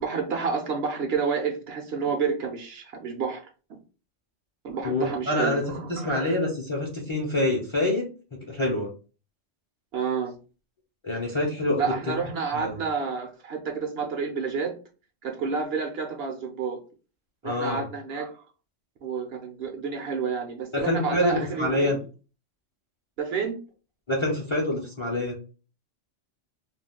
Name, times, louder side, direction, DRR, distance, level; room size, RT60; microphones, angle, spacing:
voice 1, 0.0-3.4 3.7-3.8 4.6-6.4 9.9-10.3 11.8-14.7 15.2-16.8 17.4-18.4 19.0-22.0 23.2-23.6, right 5 dB, 65° right, 3 dB, 0.8 m, -29 dB
voice 2, 4.8-5.6 5.9-8.1 8.5-8.9 11.0-12.2 12.5-12.8 17.4-17.8 20.7-22.0 24.1-25.4, left 1 dB, 35° left, -1 dB, 0.5 m, -26 dB
2.5 x 2.2 x 3.4 m, 0.34 s
omnidirectional pair, 1.3 m